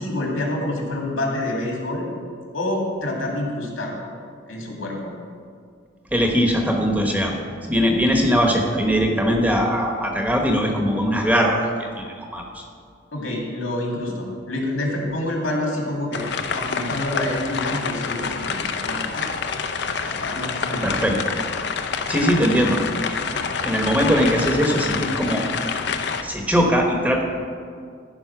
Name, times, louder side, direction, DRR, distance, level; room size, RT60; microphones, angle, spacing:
voice 1, 0.0-2.1 2.5-4.1 4.5-5.1 13.1-16.2 16.5-19.3 20.0-21.2, left 1 dB, 85° left, -1 dB, 2.4 m, -27 dB
voice 2, 6.1-7.3 7.7-11.7 12.0-12.6 20.8-21.2 22.1-22.8 23.6-25.4 26.2-27.2, equal, 10° right, 1 dB, 1.1 m, -20 dB
sound 1, 16.1-26.2, left 5 dB, 55° left, 0.5 m, -27 dB
14.0 x 5.3 x 5.9 m, 2.2 s
head